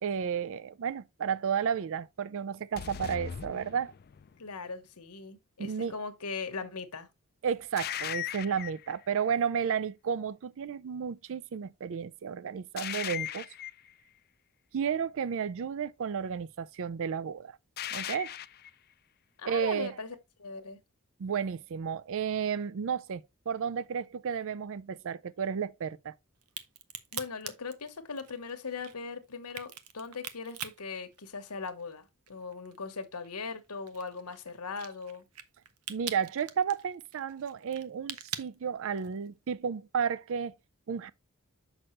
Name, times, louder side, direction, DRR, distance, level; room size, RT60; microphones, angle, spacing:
voice 1, 0.0-3.9 5.6-5.9 7.4-13.5 14.7-17.6 17.9-18.3 19.5-19.9 21.2-26.1 35.9-40.5 40.9-41.1, right 7 dB, 60° right, 0.4 m, -32 dB
sound 1, 2.8-4.4 7.8-8.9 12.8-13.9 17.8-18.7, left 10 dB, 45° left, 0.4 m, -38 dB
voice 2, 4.4-7.1 19.4-20.8 27.1-35.2, left 4 dB, 85° left, 1.2 m, -39 dB
Crack, 26.4-31.9 32.3-39.3, right 9 dB, 90° right, 0.8 m, -43 dB
6.4 x 6.1 x 3.1 m
head